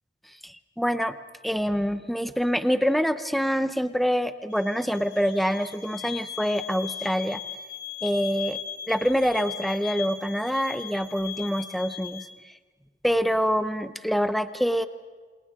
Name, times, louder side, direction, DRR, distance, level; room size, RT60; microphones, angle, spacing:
voice 1, 0.4-1.2 1.4-7.4 8.0-8.6 8.9-12.3 13.0-14.9, equal, ahead, 10 dB, 0.8 m, -25 dB
sound 1, 4.5-12.3, left 9 dB, 65° left, 4.1 m, -39 dB
29.0 x 28.0 x 3.7 m, 1.5 s
head